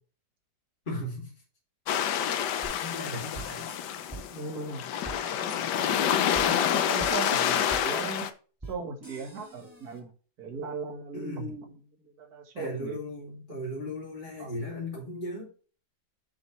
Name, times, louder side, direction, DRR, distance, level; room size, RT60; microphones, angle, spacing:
voice 1, 0.9-1.3 2.5-3.7 7.0-7.2 11.1-11.6 12.6-15.5, left 1 dB, 30° left, -5 dB, 2.9 m, -37 dB
sound 1, 1.9-8.3, left 9 dB, 85° left, 1.4 m, -28 dB
sound 2, 2.6-2.7 3.3-3.7 4.1-4.2 5.0-5.2 5.5-5.6 6.3-6.5 7.0-7.3 7.7-7.8 8.6-8.7 9.0-10.0, right 3 dB, 10° right, 1.9 m, -42 dB
voice 2, 4.3-4.9 5.4-5.6 6.4-8.3 8.7-10.1 10.4-13.0 14.4-14.5, right 4 dB, 65° right, 4 dB, 2.1 m, -38 dB
8.1 x 7.2 x 3.3 m, 0.37 s
omnidirectional pair, 1.8 m